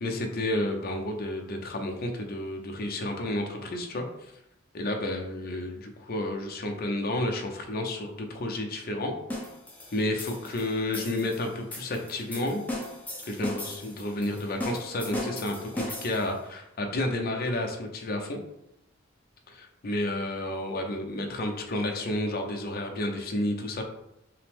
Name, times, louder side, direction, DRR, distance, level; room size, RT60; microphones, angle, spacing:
voice 1, 0.0-4.1 4.7-9.1 9.9-12.6 13.3-18.4 19.5-23.8, left 1 dB, 50° left, 3 dB, 0.6 m, -31 dB
sound 1, 9.3-16.4, left 1 dB, 10° left, 0.7 m, -38 dB
5.6 x 2.0 x 3.5 m, 0.82 s
head